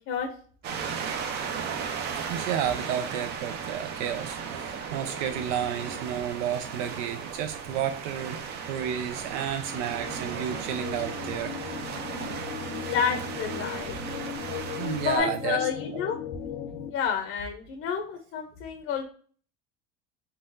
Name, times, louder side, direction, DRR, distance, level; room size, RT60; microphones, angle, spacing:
sound 1, 0.6-15.2, right 6 dB, 30° right, 0.4 m, -36 dB
voice 1, 2.3-8.4 8.7-11.6 14.8-15.6 16.7-16.8, right 9 dB, 85° right, 7 dB, 0.6 m, -31 dB
sound 2, 9.6-16.9, left 8 dB, 80° left, 0.7 m, -37 dB
voice 2, 12.7-14.0 15.0-16.2 16.9-19.0, left 7 dB, 35° left, 5 dB, 0.6 m, -29 dB
4.1 x 3.9 x 2.5 m, 0.43 s
cardioid pair, 175°, 35 cm